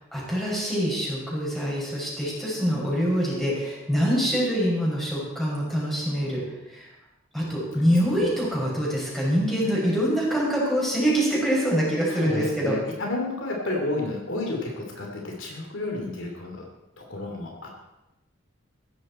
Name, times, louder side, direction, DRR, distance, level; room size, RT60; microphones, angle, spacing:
voice 1, 0.1-6.4 6.7-6.9 7.3-12.7, equal, ahead, -6 dB, 6.3 m, -25 dB
voice 2, 12.1-16.7 17.0-17.7, left 2 dB, 70° left, 0 dB, 3.0 m, -31 dB
16.0 x 14.0 x 4.4 m, 0.95 s
head